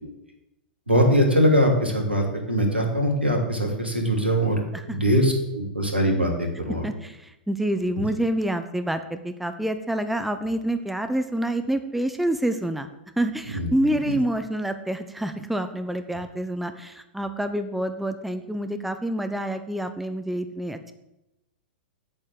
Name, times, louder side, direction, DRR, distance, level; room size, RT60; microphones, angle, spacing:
voice 1, 0.9-4.6 4.9-6.8 13.5-13.7 14.0-14.1, equal, 90° right, 2 dB, 2.9 m, -22 dB
voice 2, 6.8-12.9 13.2-20.9, right 1 dB, 5° right, 8 dB, 0.8 m, -27 dB
8.8 x 8.6 x 7.7 m, 0.92 s
figure-of-eight pair, 100°, 6 cm